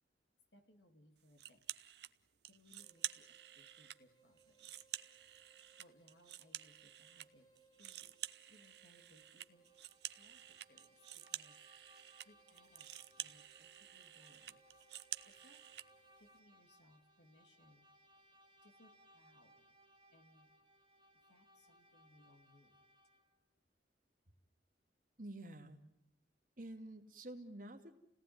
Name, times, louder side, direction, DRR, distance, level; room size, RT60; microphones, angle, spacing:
voice 1, 0.5-1.6 2.4-4.8 5.8-7.5 7.8-9.7 10.0-12.9 13.2-14.6 15.2-15.7 16.2-18.0 18.6-19.8 20.1-20.5 21.1-22.9, left 1 dB, 70° left, 2.7 m, -68 dB
sound 1, 1.4-2.1 2.4-4.0 4.4-7.3 7.6-15.9, right 13 dB, 65° right, 0.9 m, -49 dB
sound 2, 2.8-16.4, right 5 dB, 25° left, 3.9 m, -71 dB
Bowed string instrument, 9.5-23.4, equal, 25° right, 2.1 m, -68 dB
voice 2, 25.2-25.9 26.6-27.9, right 1 dB, 50° right, 2.6 m, -49 dB
29.5 x 18.0 x 9.6 m
head